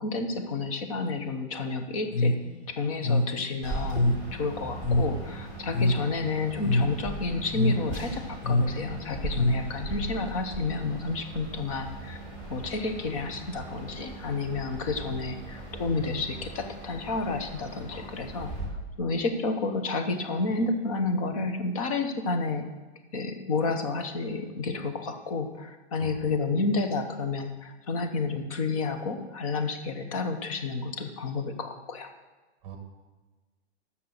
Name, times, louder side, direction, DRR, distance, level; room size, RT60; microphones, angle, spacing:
voice 1, 0.0-2.3 2.7-12.2 12.5-18.5 19.0-22.6 23.1-32.1, left 3 dB, 30° left, 7 dB, 0.9 m, -30 dB
sound 1, 2.1-10.0, left 1 dB, 55° left, 0.9 m, -27 dB
sound 2, 3.6-18.7, right 2 dB, 15° left, 2.1 m, -39 dB
voice 2, 26.0-26.3 32.6-32.8, right 5 dB, 15° right, 5 dB, 1.1 m, -44 dB
11.0 x 7.1 x 6.6 m, 1.2 s
hypercardioid pair, 175°, 35 cm